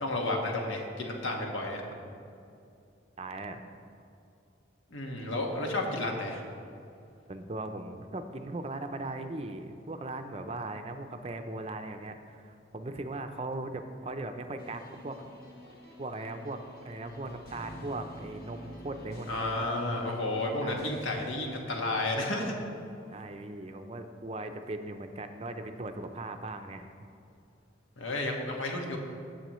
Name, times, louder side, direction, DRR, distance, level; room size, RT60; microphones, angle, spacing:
voice 1, 0.0-1.8 4.9-6.4 19.3-22.5 28.0-29.0, left 2 dB, 85° left, 1 dB, 1.5 m, -32 dB
voice 2, 3.2-3.7 7.3-15.3 16.0-16.6 16.8-19.5 20.6-20.9 23.1-26.9, right 2 dB, 30° right, 7 dB, 0.5 m, -39 dB
sound 1, 14.6-21.3, equal, 50° left, 1.4 m, -48 dB
16.0 x 7.1 x 3.1 m, 2.5 s
head